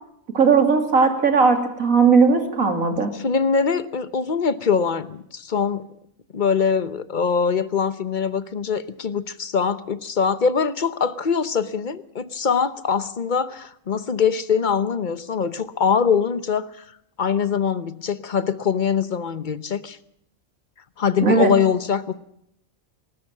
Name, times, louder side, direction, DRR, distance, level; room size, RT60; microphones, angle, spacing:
voice 1, 0.3-3.1 21.2-21.5, right 5 dB, 85° right, 3.0 m, -17 dB
voice 2, 3.1-5.9 6.3-16.8 17.2-20.0 21.0-22.1, left 6 dB, 40° left, 1.0 m, -23 dB
19.5 x 18.5 x 7.4 m
omnidirectional pair, 1.4 m